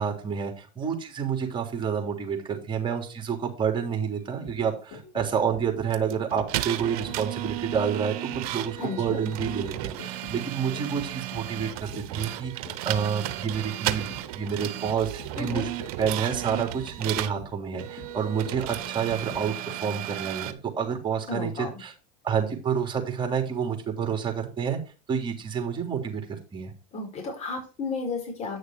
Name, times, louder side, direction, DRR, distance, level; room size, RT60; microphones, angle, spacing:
voice 1, 0.0-14.1 14.3-15.7 16.0-21.9 22.2-24.8 25.1-26.2 26.5-26.7, right 7 dB, 25° right, 4 dB, 3.2 m, -29 dB
sound 1, 4.2-20.1 20.4-20.5, left 3 dB, 50° left, 4.9 m, -45 dB
sound 2, 5.9-17.4 17.8-20.5, right 15 dB, 70° right, 1.0 m, -34 dB
voice 2, 8.8-9.2 15.4-15.7 21.3-21.8 26.9-28.6, left 3 dB, 35° left, 1 dB, 5.2 m, -33 dB
9.6 x 6.5 x 4.6 m, 0.34 s
supercardioid pair, 105°, 19 cm